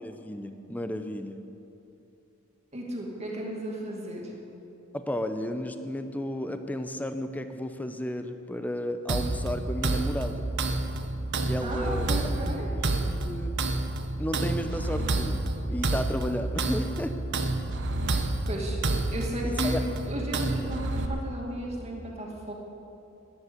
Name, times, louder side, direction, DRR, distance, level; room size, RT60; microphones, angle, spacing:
voice 1, 0.0-1.4 4.9-10.4 11.4-12.1 12.7-13.6 14.2-15.4 15.7-17.1 18.1-18.3 19.4-19.8, equal, 5° left, 8 dB, 0.6 m, -33 dB
voice 2, 2.7-4.3 11.6-12.7 18.5-18.8 19.1-22.5, equal, 30° right, -1 dB, 2.4 m, -34 dB
sound 1, 9.1-21.1, right 2 dB, 55° right, 1.0 m, -29 dB
12.5 x 10.5 x 8.0 m, 2.8 s
head